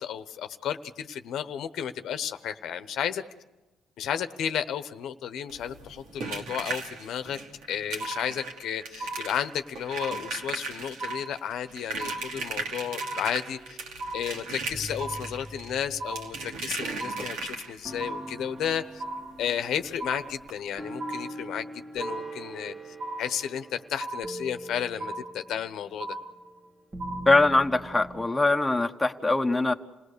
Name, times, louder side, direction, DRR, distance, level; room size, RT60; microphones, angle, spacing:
voice 1, 0.0-3.2 4.0-7.4 7.7-13.8 14.1-19.0 19.4-26.2, left 9 dB, 75° left, 10 dB, 1.0 m, -33 dB
sound 1, 5.5-18.0 19.5-19.6 19.8-20.0 20.4-20.5, right 3 dB, 90° right, 2.6 m, -37 dB
sound 2, 8.0-8.7 9.0-9.7 10.0-10.7 11.0-11.7 12.0-12.7 13.0-13.7 14.0-14.7 15.0-15.7 16.0-16.7 17.0-17.7 18.0-18.7 19.0-19.7 20.0-20.7 21.0-21.7 22.0-22.7 23.0-23.7 24.0-24.7 25.0-25.7 26.0-26.7 27.0-27.7, right 2 dB, 70° right, 2.0 m, -38 dB
sound 3, 12.8-14.0 14.7-17.3 17.8-28.3, right 1 dB, 25° right, 1.6 m, -43 dB
voice 2, 27.3-29.7, left 2 dB, 10° left, 4 dB, 1.2 m, -22 dB
28.0 x 18.0 x 6.8 m, 1.1 s
cardioid pair, 90°, 0 cm